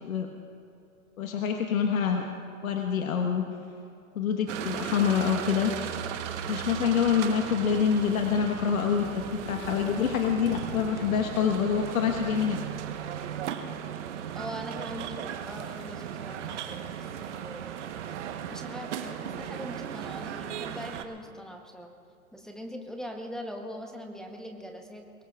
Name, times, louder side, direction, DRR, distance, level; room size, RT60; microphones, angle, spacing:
voice 1, 1.2-2.2 2.6-3.4 4.1-5.7 6.5-12.6, left 7 dB, 70° left, 3 dB, 1.4 m, -26 dB
sound 1, 4.5-21.1, right 9 dB, 55° right, 1.2 m, -36 dB
voice 2, 14.3-17.7 18.5-21.9 22.3-25.1, equal, ahead, 2 dB, 0.9 m, -41 dB
23.0 x 19.5 x 2.4 m, 2.6 s
hypercardioid pair, 135°, 43 cm